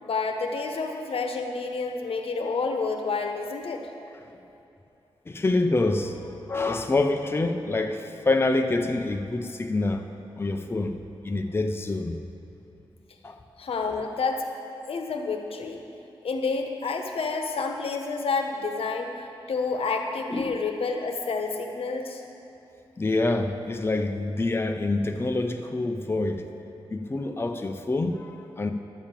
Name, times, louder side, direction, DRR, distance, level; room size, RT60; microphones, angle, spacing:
voice 1, 0.0-3.9 13.6-14.5 14.9-15.8 16.2-19.1 19.5-22.2, left 4 dB, 80° left, 4 dB, 1.0 m, -29 dB
voice 2, 5.3-11.0 11.2-12.2 13.2-13.4 20.3-20.6 23.0-26.5 26.9-28.7, left 2 dB, 25° left, 5 dB, 0.6 m, -26 dB
11.5 x 7.2 x 7.4 m, 2.7 s
wide cardioid pair, 100°, 10 cm